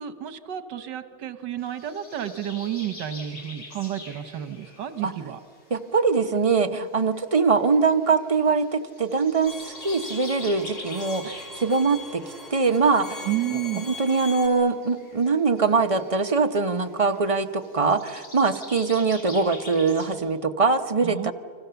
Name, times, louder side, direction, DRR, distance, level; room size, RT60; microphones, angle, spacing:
voice 1, 0.0-5.4 13.3-13.8 21.0-21.3, right 11 dB, 85° right, 11 dB, 1.7 m, -31 dB
sound 1, 1.6-20.1, left 2 dB, 80° left, 4.7 m, -45 dB
voice 2, 5.7-12.2 12.5-21.3, right 4 dB, 30° right, 6 dB, 0.7 m, -23 dB
Bowed string instrument, 9.5-14.5, left 2 dB, ahead, 3.7 m, -40 dB
29.5 x 25.0 x 7.0 m, 2.1 s
omnidirectional pair, 1.8 m